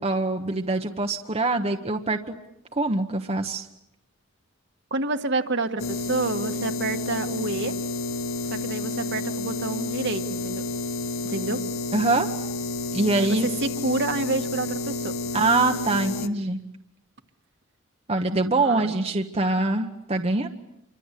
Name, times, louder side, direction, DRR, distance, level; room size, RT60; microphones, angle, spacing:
voice 1, 0.0-2.4 2.7-3.7 11.9-12.3 12.9-13.5 15.3-16.6 18.1-20.5, right 2 dB, 30° right, 4 dB, 1.2 m, -24 dB
voice 2, 4.9-7.7 8.4-10.6 11.2-11.6 13.2-15.1 18.6-18.9, right 3 dB, 60° right, 5 dB, 1.8 m, -28 dB
sound 1, 5.8-16.3, left 2 dB, 75° left, 1.1 m, -30 dB
28.0 x 24.5 x 8.4 m, 0.81 s
head